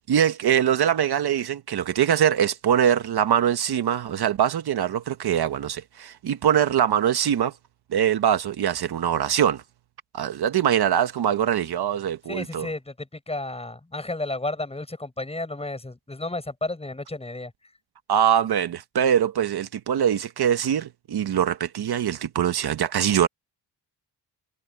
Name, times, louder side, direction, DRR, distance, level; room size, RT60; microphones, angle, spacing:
voice 1, 0.1-7.5 7.9-9.6 10.1-12.7 18.1-23.3, right 9 dB, 60° right, 1.1 m, -23 dB
voice 2, 12.3-17.5, left 2 dB, 15° left, 7.1 m, -32 dB
wide cardioid pair, 130°, 42 cm